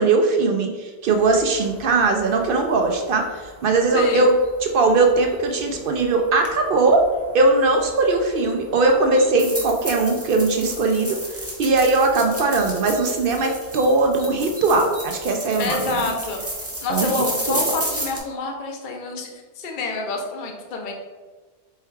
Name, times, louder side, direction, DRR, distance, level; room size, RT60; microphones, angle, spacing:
voice 1, 0.0-4.3 4.6-7.0 7.3-11.2 11.6-16.0 16.9-17.6, right 3 dB, 60° right, 3 dB, 0.6 m, -20 dB
sound 1, 1.1-18.2, right 1 dB, 15° right, 0.7 m, -34 dB
voice 2, 3.9-4.3 15.6-16.4 16.8-20.9, left 3 dB, 50° left, 2 dB, 0.7 m, -28 dB
4.5 x 2.3 x 4.4 m, 1.3 s
omnidirectional pair, 1.2 m